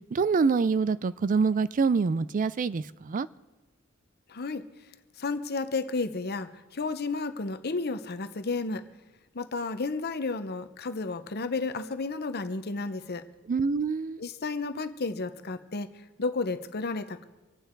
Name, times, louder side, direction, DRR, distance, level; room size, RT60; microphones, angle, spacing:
voice 1, 0.1-3.3 13.5-14.2, right 5 dB, 40° right, 0.4 m, -25 dB
voice 2, 4.3-4.6 5.2-8.8 9.3-13.2 14.2-15.9 16.2-17.3, left 3 dB, 50° left, 0.9 m, -32 dB
26.0 x 9.1 x 4.5 m
head